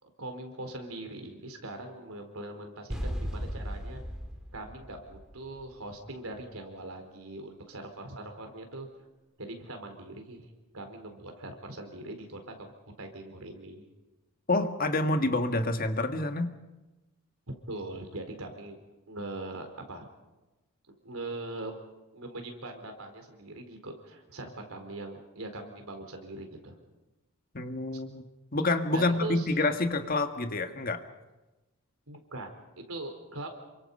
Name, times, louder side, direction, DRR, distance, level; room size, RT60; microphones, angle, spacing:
voice 1, 0.0-4.0 4.5-8.9 9.4-10.5 10.7-13.8 17.7-18.8 19.1-20.1 21.0-21.8 22.1-26.8 27.9-28.0 28.9-29.5 32.1-33.5, right 2 dB, 80° right, 5 dB, 4.3 m, -41 dB
sound 1, 2.9-5.9, equal, 5° right, 3.0 m, -36 dB
voice 2, 14.5-16.5 27.5-28.2 28.5-31.0, left 2 dB, 40° left, 7 dB, 1.6 m, -28 dB
28.0 x 25.0 x 5.5 m, 1.1 s
head